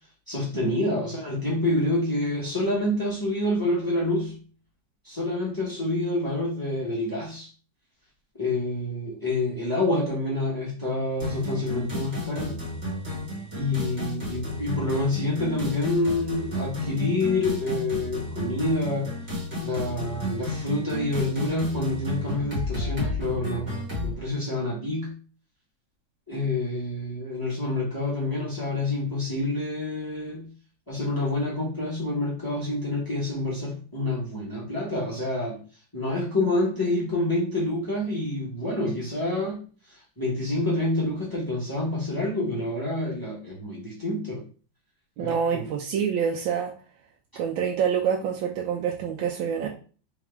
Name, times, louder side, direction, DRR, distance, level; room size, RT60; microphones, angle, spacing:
voice 1, 0.3-4.3 5.0-7.5 8.4-12.6 13.5-19.1 19.6-23.7 24.0-25.1 26.3-30.5 30.9-35.6 35.9-44.4 45.2-45.7, left 2 dB, 10° left, -6 dB, 1.4 m, -27 dB
sound 1, 11.2-24.1, left 1 dB, 25° right, 2.0 m, -33 dB
voice 2, 45.2-46.7 47.4-49.7, right 7 dB, 90° right, 1 dB, 1.4 m, -26 dB
3.6 x 3.5 x 3.4 m, 0.39 s
omnidirectional pair, 2.1 m